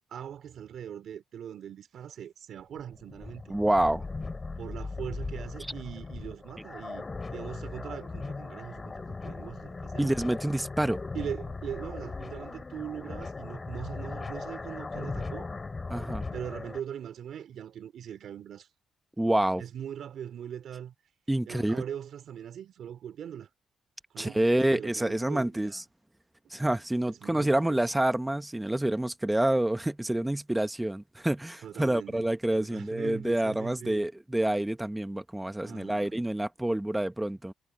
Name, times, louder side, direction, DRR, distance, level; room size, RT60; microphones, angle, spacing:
voice 1, 0.1-3.5 4.6-7.0 7.3-8.9 9.2-10.2 11.1-15.5 16.3-18.7 19.6-20.9 21.5-23.5 24.1-25.8 27.1-27.8 31.6-32.3 32.5-34.1 35.6-36.1, right 9 dB, 65° right, 2.6 m, -41 dB
sound 1, 2.6-16.8, left 3 dB, 25° left, 3.3 m, -38 dB
voice 2, 3.5-4.0 10.0-11.0 15.9-16.2 19.2-19.6 21.3-21.8 24.2-25.8 26.5-37.5, right 1 dB, 10° right, 1.0 m, -27 dB
cardioid pair, 90°, 0 cm